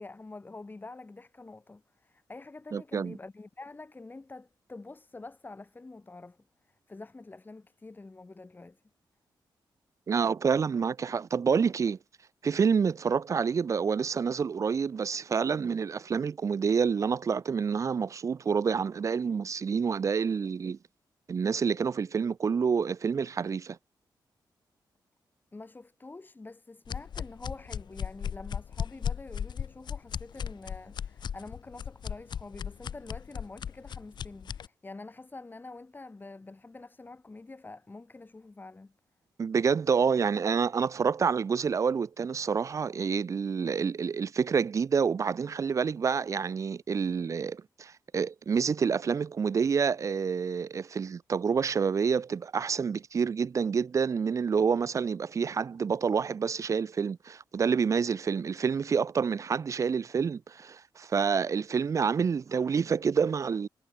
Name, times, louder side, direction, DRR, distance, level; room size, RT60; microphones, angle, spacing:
voice 1, 0.0-8.8 25.5-38.9, left 3 dB, 25° left, 4.3 m, -46 dB
voice 2, 2.7-3.2 10.1-12.0 12.4-20.8 21.3-23.8 39.4-63.7, right 6 dB, 40° right, 0.4 m, -28 dB
sound 1, 26.9-34.7, left 8 dB, 70° left, 2.8 m, -36 dB
cardioid pair, 95°, 8 cm